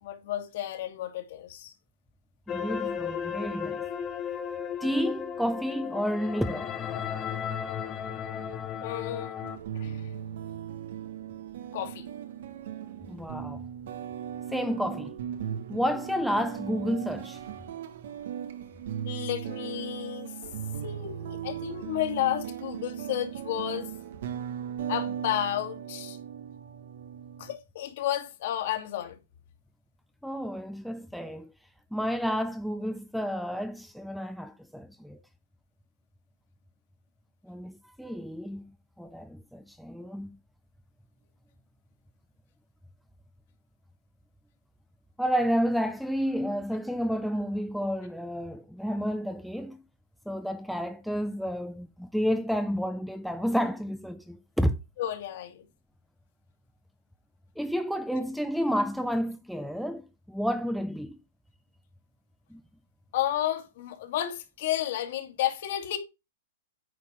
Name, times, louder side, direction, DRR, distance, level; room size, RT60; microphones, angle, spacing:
voice 1, 0.0-1.7 8.8-9.4 9.7-10.1 11.7-12.1 19.1-20.4 20.8-23.9 24.9-26.2 27.4-29.2 55.0-55.6 63.1-66.0, left 12 dB, 60° left, 2.2 m, -32 dB
sound 1, 2.5-9.6, left 8 dB, 25° left, 1.0 m, -35 dB
voice 2, 2.5-3.8 4.8-6.7 13.1-13.6 14.5-15.2 15.7-17.4 30.2-31.5 31.9-35.2 37.4-38.6 39.0-40.3 45.2-49.8 50.3-54.7 57.6-61.2 62.5-62.6, equal, ahead, 0.6 m, -30 dB
sound 2, 9.4-27.6, right 9 dB, 65° right, 1.1 m, -38 dB
9.4 x 4.5 x 4.8 m
hypercardioid pair, 135°, 0 cm